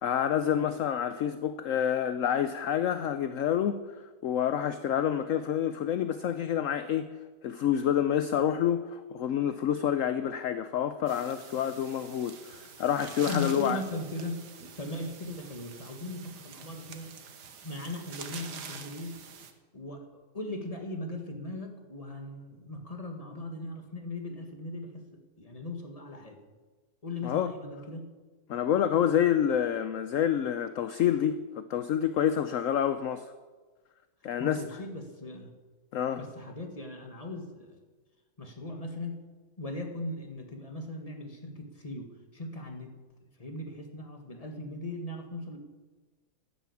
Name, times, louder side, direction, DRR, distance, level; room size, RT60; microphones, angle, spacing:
voice 1, 0.0-3.8 4.2-7.1 7.4-13.8 27.2-27.5 28.5-33.3 34.2-34.6 35.9-36.2, left 9 dB, 65° left, 0.9 m, -28 dB
sound 1, 11.1-19.5, right 6 dB, 85° right, 1.8 m, -46 dB
voice 2, 13.3-14.5 14.8-17.3 17.6-19.2 19.7-20.0 20.3-25.1 25.4-26.4 27.0-28.1 34.2-35.5 36.2-37.8 38.4-39.2 39.6-42.9 43.4-45.6, left 2 dB, 20° left, 1.8 m, -38 dB
12.5 x 10.5 x 8.5 m
omnidirectional pair, 1.7 m